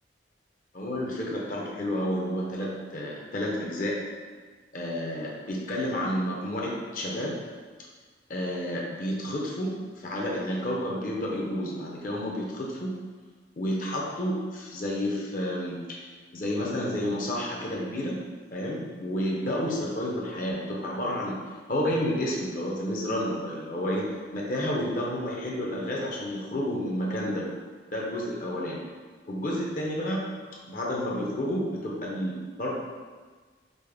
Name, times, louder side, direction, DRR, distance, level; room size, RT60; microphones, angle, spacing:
voice 1, 0.7-4.0 4.7-7.4 8.3-13.0 13.6-16.1 16.3-18.2 18.5-21.4 21.7-27.5 27.9-28.8 29.3-30.3 30.7-32.7, equal, 45° left, -3 dB, 0.6 m, -30 dB
5.1 x 2.0 x 3.4 m, 1.5 s
head